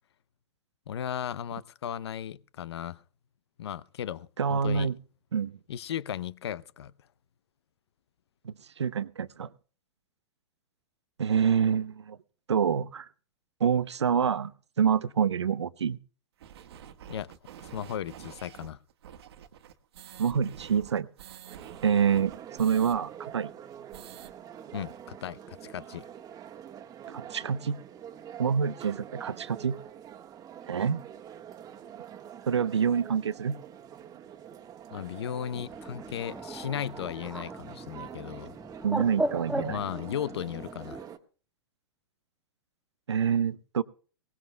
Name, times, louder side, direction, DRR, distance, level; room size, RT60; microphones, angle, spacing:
voice 1, 0.9-3.0 3.6-4.9 5.7-6.9 17.1-17.3 17.6-18.8 24.7-26.1 34.9-38.5 39.6-41.0, left 9 dB, 75° left, 0.7 m, -36 dB
voice 2, 4.4-5.0 5.3-5.5 8.4-9.5 11.2-12.2 12.5-13.0 13.6-14.5 14.8-16.0 20.2-21.1 21.8-22.3 22.6-23.5 27.1-27.8 28.4-29.8 30.7-31.0 32.5-33.6 38.8-39.8 43.1-43.8, right 7 dB, 90° right, 0.7 m, -26 dB
sound 1, 16.4-23.0 23.3-23.4 23.7-24.3, right 9 dB, 70° right, 1.4 m, -48 dB
sound 2, 21.5-41.2, right 9 dB, 25° right, 1.4 m, -46 dB
Bird, 35.5-41.0, right 1 dB, 5° right, 1.3 m, -37 dB
21.5 x 18.5 x 2.2 m
hypercardioid pair, 110°, 14 cm